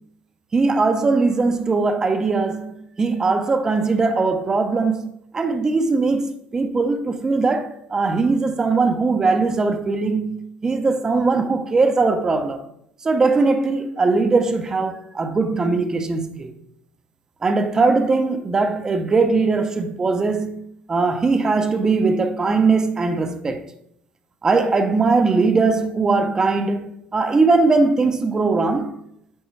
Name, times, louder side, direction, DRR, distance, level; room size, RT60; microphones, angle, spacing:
voice 1, 0.5-12.7 13.0-16.5 17.4-20.6 20.9-23.6 24.4-29.0, right 3 dB, 20° right, 0.6 m, -20 dB
8.8 x 4.5 x 3.2 m
cardioid pair, 160°, 4 cm